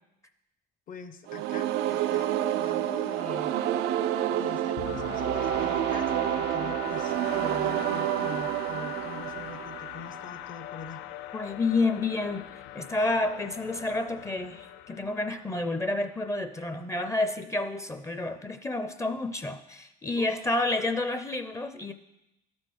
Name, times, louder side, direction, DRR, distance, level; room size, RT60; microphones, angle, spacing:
voice 1, 0.9-3.6 4.3-11.0 20.2-20.3, left 5 dB, 55° left, 10 dB, 0.9 m, -44 dB
sound 1, 1.3-10.2, right 12 dB, 85° right, 0.4 m, -29 dB
sound 2, 4.8-16.5, left 13 dB, 90° left, 0.4 m, -42 dB
voice 2, 11.3-21.9, left 2 dB, 15° left, 9 dB, 0.5 m, -29 dB
12.0 x 4.4 x 6.3 m, 0.90 s
cardioid pair, 110°, 17 cm